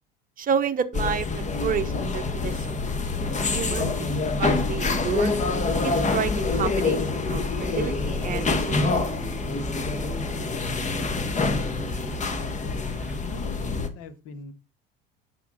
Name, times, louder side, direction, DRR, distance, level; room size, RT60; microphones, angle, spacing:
voice 1, 0.4-2.8 3.5-4.1 4.4-5.3 5.8-8.9, right 7 dB, 30° right, 1.0 m, -30 dB
sound 1, 0.9-13.9, left 3 dB, 25° left, 1.3 m, -26 dB
sound 2, 7.6-13.2, right 1 dB, 5° right, 1.2 m, -39 dB
voice 2, 12.6-14.5, left 5 dB, 50° left, 1.4 m, -42 dB
8.3 x 6.1 x 3.9 m
hypercardioid pair, 70°, 29 cm